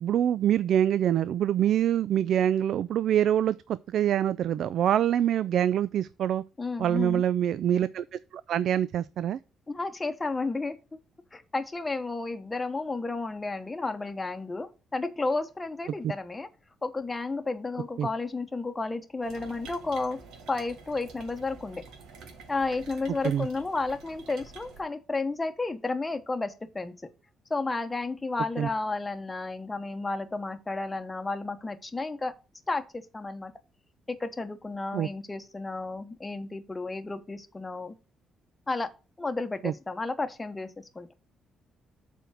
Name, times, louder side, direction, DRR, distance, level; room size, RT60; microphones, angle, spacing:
voice 1, 0.0-6.4 6.8-9.4 18.0-18.1 23.2-23.5 28.6-28.7 34.9-35.1 39.6-39.7, right 10 dB, 70° right, 0.3 m, -25 dB
voice 2, 6.6-7.2 9.7-10.8 11.3-16.5 16.8-20.2 20.5-21.8 22.5-26.9 27.5-32.3 32.7-33.5 34.1-37.9 38.7-38.9 39.2-41.1, left 3 dB, 20° left, 1.0 m, -32 dB
sound 1, 19.2-24.8, right 5 dB, 85° right, 1.8 m, -48 dB
7.0 x 4.6 x 6.3 m
cardioid pair, 90°, 0 cm